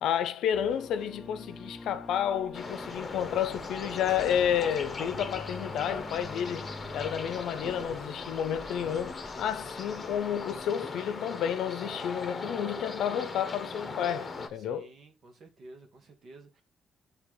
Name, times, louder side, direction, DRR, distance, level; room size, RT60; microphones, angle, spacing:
voice 1, 0.0-14.9, left 9 dB, 80° left, 0.6 m, -31 dB
sound 1, 0.5-7.4, left 2 dB, 10° left, 0.7 m, -46 dB
sound 2, 2.5-14.5, left 3 dB, 30° left, 1.0 m, -39 dB
sound 3, 2.7-10.7, left 1 dB, 10° right, 1.6 m, -50 dB
voice 2, 14.6-16.6, right 2 dB, 55° right, 1.7 m, -52 dB
9.7 x 3.4 x 3.1 m
cardioid pair, 90°, 0 cm